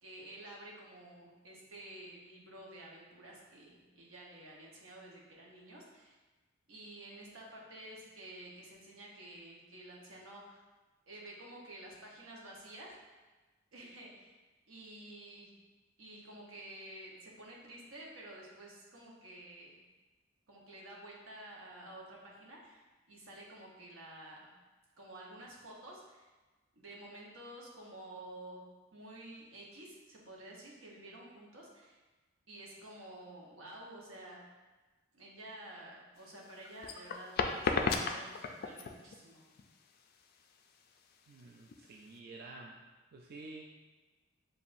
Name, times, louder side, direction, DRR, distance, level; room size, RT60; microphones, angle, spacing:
voice 1, 0.0-6.2 6.7-10.6 11.1-12.9 13.7-14.3 14.7-15.5 16.0-19.8 20.5-24.5 25.0-26.3 26.8-28.6 28.9-32.0 32.5-34.4 35.1-39.4, right 1 dB, 90° right, -3 dB, 1.0 m, -51 dB
sound 1, 36.2-42.2, left 4 dB, 50° left, 0.3 m, -35 dB
voice 2, 41.3-42.8 43.1-43.7, right 2 dB, 50° right, 0 dB, 0.3 m, -50 dB
6.9 x 2.5 x 2.6 m, 1.2 s
head